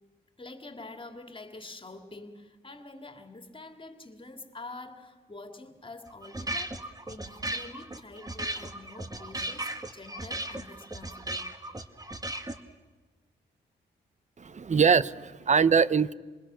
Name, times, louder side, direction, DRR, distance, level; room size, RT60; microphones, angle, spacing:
voice 1, 0.4-11.5, left 2 dB, 25° left, 2.7 m, -46 dB
sound 1, 6.1-12.6, right 1 dB, 20° right, 2.0 m, -36 dB
voice 2, 14.4-16.1, right 6 dB, 40° right, 0.9 m, -23 dB
27.0 x 27.0 x 6.4 m
cardioid pair, 70°, 19 cm